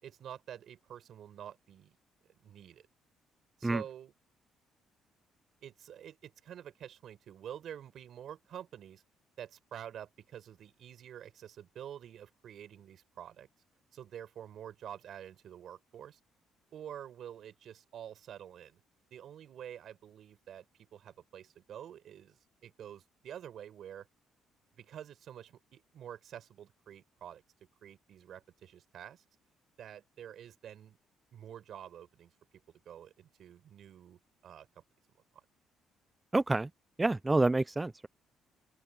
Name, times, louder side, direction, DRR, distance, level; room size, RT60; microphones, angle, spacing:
voice 1, 0.0-2.0 2.4-2.9 3.6-4.1 5.6-9.0 9.4-13.5 13.9-16.2 16.7-18.8 19.1-20.6 20.9-24.1 24.8-27.4 27.8-29.2 29.8-31.0 31.3-32.3 32.8-34.7, right 10 dB, 50° right, 5.1 m, -48 dB
voice 2, 36.3-36.7 37.0-38.1, right 2 dB, 10° right, 0.3 m, -28 dB
open air
cardioid pair, 170°, 0 cm